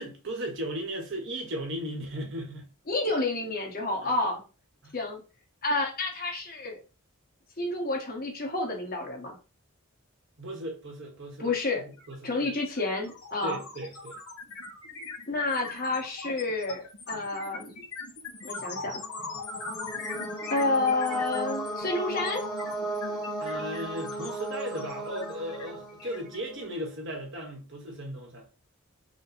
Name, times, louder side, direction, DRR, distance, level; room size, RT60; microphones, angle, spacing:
voice 1, 0.0-2.7 4.0-4.1 4.8-5.0 10.4-11.5 12.1-12.5 13.4-14.2 23.4-28.5, right 1 dB, 55° right, 1.3 m, -36 dB
voice 2, 2.9-4.4 4.9-5.2 5.6-6.8 7.6-9.3 11.4-11.8 12.2-13.6 15.3-17.7 18.4-19.0 20.5-22.4, left 2 dB, 45° left, 1.4 m, -29 dB
sound 1, 12.0-12.1 12.4-26.8, left 3 dB, 90° left, 1.7 m, -41 dB
sound 2, 18.9-26.6, right 1 dB, ahead, 1.1 m, -36 dB
5.0 x 2.3 x 4.1 m
head